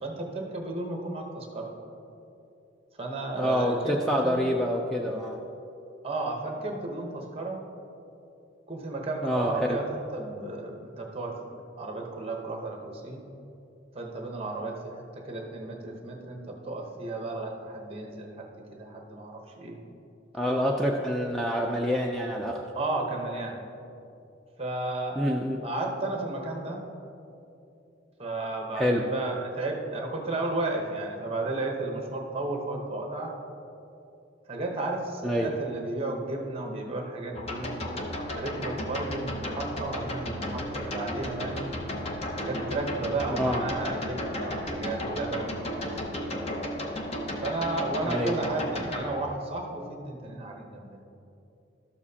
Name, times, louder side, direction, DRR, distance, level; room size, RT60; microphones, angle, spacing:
voice 1, 0.0-1.7 3.0-4.4 6.0-7.6 8.7-13.2 13.9-19.8 22.8-23.6 24.6-25.2 25.6-26.8 28.2-33.3 34.5-37.9 38.3-41.7 42.3-46.2 47.4-51.0, right 2 dB, 30° right, 2 dB, 0.9 m, -33 dB
voice 2, 3.3-5.4 9.2-9.8 20.3-22.6 25.2-25.6 28.8-29.0 35.2-35.5 43.3-43.6 48.0-48.4, equal, ahead, -1 dB, 0.4 m, -27 dB
sound 1, 37.3-49.0, left 1 dB, 30° left, 0.7 m, -34 dB
12.5 x 7.2 x 2.8 m, 2.8 s
head